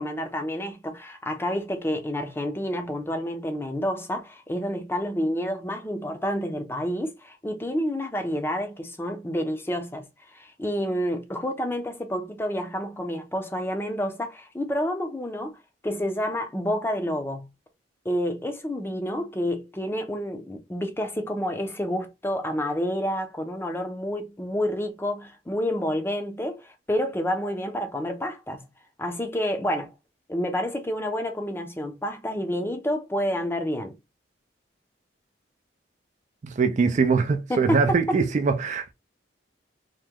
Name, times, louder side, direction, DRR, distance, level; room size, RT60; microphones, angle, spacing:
voice 1, 0.0-10.0 10.3-15.6 15.8-17.5 18.0-28.6 29.0-29.9 30.3-34.0 37.5-38.0, equal, 15° left, 0.5 m, -29 dB
voice 2, 36.4-38.9, right 4 dB, 40° right, 0.4 m, -22 dB
2.9 x 2.1 x 3.5 m
head